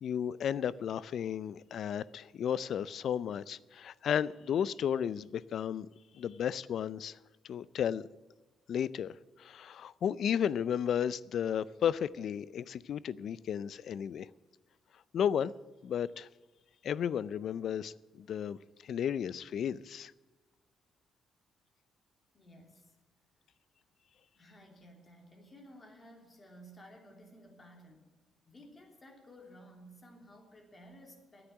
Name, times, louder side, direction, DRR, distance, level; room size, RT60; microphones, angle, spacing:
voice 1, 0.0-5.9 6.1-7.2 7.4-8.1 8.7-14.3 15.1-15.5 15.8-16.3 16.8-20.1, left 8 dB, 65° left, 20 dB, 0.4 m, -33 dB
voice 2, 22.3-23.0 24.4-28.1 28.4-31.5, equal, 30° left, 2 dB, 3.1 m, -55 dB
10.0 x 8.8 x 9.9 m, 1.2 s
cardioid pair, 90°, 0 cm